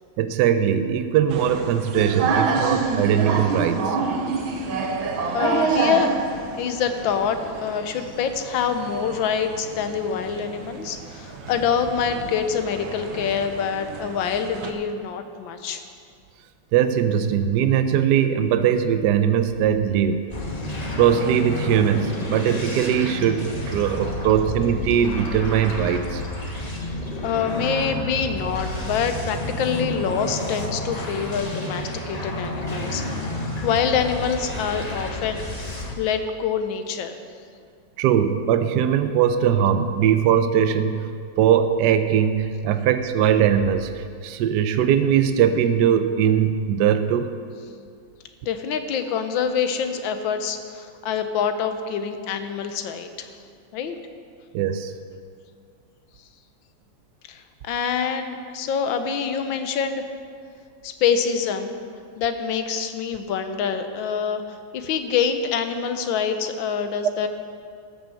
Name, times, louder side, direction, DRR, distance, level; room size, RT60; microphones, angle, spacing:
voice 1, 0.2-4.0 16.7-20.3 21.0-26.2 38.0-47.3 54.5-54.9, right 9 dB, 75° right, 9 dB, 1.1 m, -20 dB
sound 1, 1.3-14.7, right 4 dB, 90° right, 1.7 m, -28 dB
voice 2, 5.3-6.1 6.6-15.8 26.8-35.4 35.7-37.2 48.4-53.3 53.7-54.0 57.3-60.0 60.8-61.8 62.2-67.3, left 7 dB, 80° left, 8 dB, 1.5 m, -26 dB
sound 2, 20.3-35.9, left 1 dB, 25° left, 1.2 m, -30 dB
13.5 x 6.3 x 7.0 m, 2.3 s
omnidirectional pair, 2.1 m